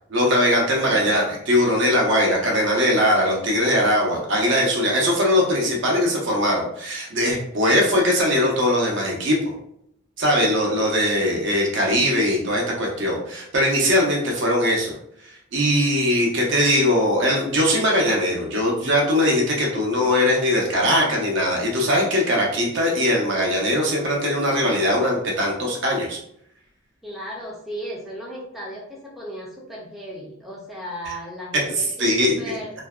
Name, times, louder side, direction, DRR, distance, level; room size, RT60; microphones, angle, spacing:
voice 1, 0.1-9.4 10.2-14.9 15.5-26.2 31.7-32.6, equal, 60° right, -1 dB, 0.7 m, -20 dB
voice 2, 0.8-1.1 27.0-32.7, equal, ahead, -4 dB, 0.4 m, -36 dB
2.5 x 2.1 x 2.3 m, 0.71 s
head